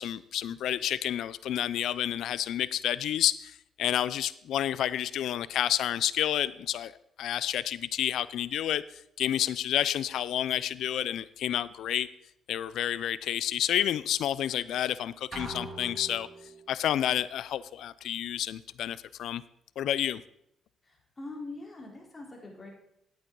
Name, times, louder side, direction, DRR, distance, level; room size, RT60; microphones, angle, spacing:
voice 1, 0.0-6.9 7.2-8.8 9.2-12.1 12.5-16.3 16.7-19.4 19.8-20.2, left 11 dB, 75° left, 17 dB, 0.4 m, -30 dB
sound 1, 15.3-16.8, right 2 dB, 35° right, 2.6 m, -41 dB
voice 2, 20.8-22.7, left 2 dB, 25° left, -2 dB, 3.6 m, -43 dB
11.0 x 8.7 x 3.8 m, 0.75 s
cardioid pair, 90°, 0 cm